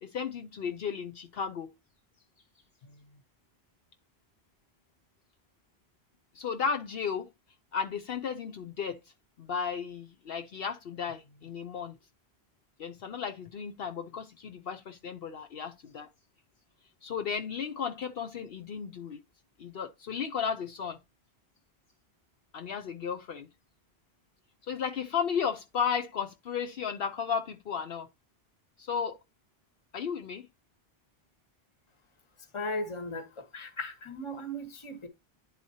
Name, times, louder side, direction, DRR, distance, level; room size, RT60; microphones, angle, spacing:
voice 1, 0.0-1.7 2.8-3.0 6.3-7.3 7.7-9.0 9.4-12.0 12.8-16.1 17.0-19.2 19.6-21.0 22.5-23.5 24.7-28.1 28.8-29.2 29.9-30.5, left 6 dB, 65° left, 0.9 m, -34 dB
voice 2, 32.5-35.1, left 1 dB, 30° left, 1.0 m, -37 dB
10.5 x 4.2 x 2.7 m
omnidirectional pair, 1.1 m